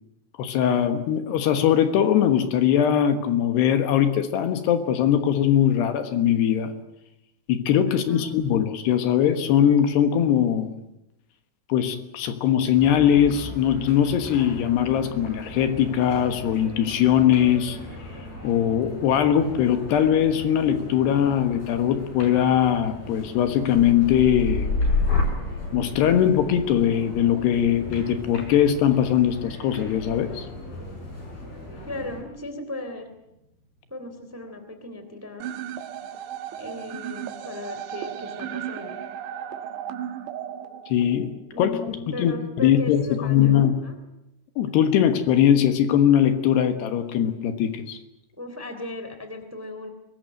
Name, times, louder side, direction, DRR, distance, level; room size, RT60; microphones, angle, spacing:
voice 1, 0.4-6.7 7.5-10.7 11.7-17.8 18.4-24.7 25.7-30.5 40.9-41.3 41.6-42.3 42.6-43.8 44.6-48.0, left 9 dB, 70° left, 9 dB, 3.3 m, -21 dB
voice 2, 7.9-8.3 31.8-33.1 33.9-35.5 36.6-39.0 41.5-44.0 48.3-49.9, left 2 dB, 5° right, 7 dB, 2.3 m, -37 dB
sound 1, 12.7-32.2, left 1 dB, 55° left, 8.5 m, -39 dB
sound 2, 23.6-31.5 31.9-32.4, left 3 dB, 25° left, 3.5 m, -29 dB
sound 3, 35.4-41.4, right 10 dB, 75° right, 3.5 m, -35 dB
23.5 x 20.5 x 9.1 m, 0.87 s
omnidirectional pair, 5.1 m